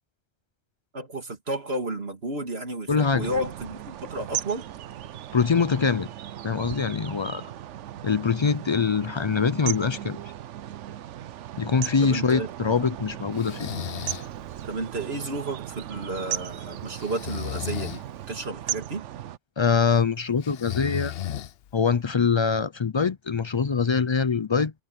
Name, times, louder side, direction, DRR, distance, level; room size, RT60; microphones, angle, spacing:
voice 1, 0.9-4.6 12.0-12.5 14.6-18.0 18.3-19.0, right 2 dB, 60° right, 2.7 m, -32 dB
voice 2, 2.9-3.3 5.3-6.1 6.4-7.4 8.0-10.2 11.6-13.7 19.6-21.1 21.7-24.7, left 5 dB, 45° left, 0.4 m, -23 dB
Moervaart met watervogels en Spanjeveerbrug, 3.2-19.4, right 11 dB, 85° right, 1.0 m, -37 dB
Breathing, 13.4-14.3 17.0-18.0 20.4-21.8, left 11 dB, 60° left, 0.8 m, -34 dB
omnidirectional pair, 1.2 m